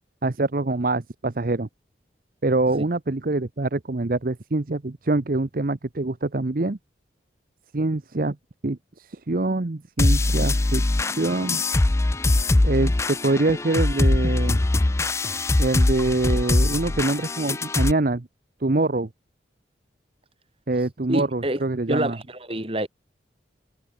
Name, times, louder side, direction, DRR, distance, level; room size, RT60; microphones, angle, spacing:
voice 1, 0.2-1.7 2.4-6.8 7.7-8.4 8.6-11.6 12.6-14.6 15.6-18.3 18.6-19.1 20.7-22.2, right 2 dB, 50° right, 0.8 m, -25 dB
sound 1, 10.0-17.9, left 2 dB, 15° left, 0.4 m, -22 dB
voice 2, 21.1-21.6 21.9-22.9, right 1 dB, 30° right, 6.1 m, -26 dB
head